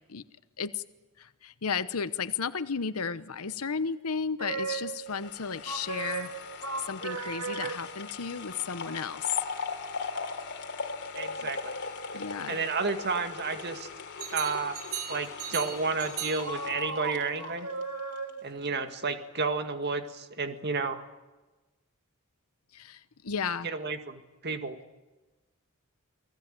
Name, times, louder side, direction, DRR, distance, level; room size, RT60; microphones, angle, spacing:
voice 1, 1.2-6.3 6.8-9.4 11.4-11.5 12.1-12.6 22.7-23.7, left 6 dB, 85° left, 13 dB, 1.0 m, -33 dB
sound 1, 4.4-5.1 5.7-8.1 14.2-18.6, right 5 dB, 90° right, 2.7 m, -36 dB
sound 2, 5.1-18.3 18.7-18.8, left 4 dB, 55° left, 3.2 m, -39 dB
voice 2, 11.1-11.8 12.5-13.9 14.3-14.8 15.1-17.7 18.4-21.1 23.6-24.8, right 4 dB, 50° right, 7 dB, 2.0 m, -31 dB
29.0 x 20.0 x 9.0 m, 1.1 s
head